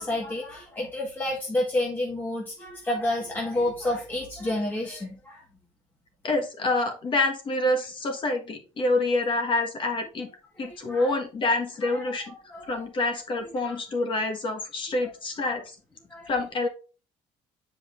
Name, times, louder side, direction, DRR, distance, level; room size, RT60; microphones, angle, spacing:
voice 1, 0.0-5.4 10.7-11.1 11.8-11.9 12.3-12.8 13.6-13.8 15.4-15.5 16.1-16.3, left 1 dB, 15° left, -2 dB, 1.6 m, -30 dB
voice 2, 6.2-10.3 10.6-12.3 12.6-15.8 16.3-16.7, left 2 dB, 40° left, 5 dB, 1.5 m, -27 dB
7.7 x 5.0 x 2.5 m, 0.36 s
cardioid pair, 120°, 13 cm